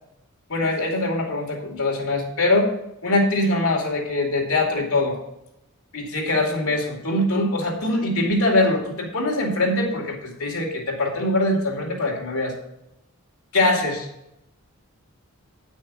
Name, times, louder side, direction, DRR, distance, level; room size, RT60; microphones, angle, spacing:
voice 1, 0.5-2.7 3.0-5.2 5.9-12.5 13.5-14.1, left 2 dB, 80° left, 1 dB, 2.5 m, -22 dB
9.4 x 6.2 x 4.9 m, 0.83 s
head